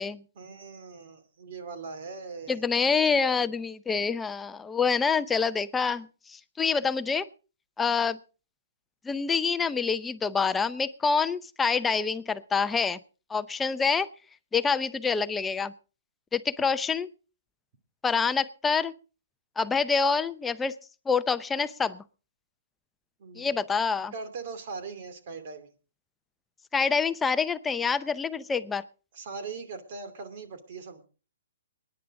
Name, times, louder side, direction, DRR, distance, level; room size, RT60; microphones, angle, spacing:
voice 1, 0.3-2.6 23.2-23.5 24.1-25.7 29.1-31.1, right 4 dB, 50° right, 9 dB, 2.6 m, -40 dB
voice 2, 2.5-7.3 7.8-8.2 9.0-13.0 13.3-14.1 14.5-15.7 16.3-17.1 18.0-18.9 19.6-20.7 21.1-22.0 23.4-24.1 26.7-28.8, left 5 dB, 10° left, 12 dB, 0.6 m, -26 dB
23.0 x 10.0 x 3.7 m, 0.35 s
hypercardioid pair, 145°, 0 cm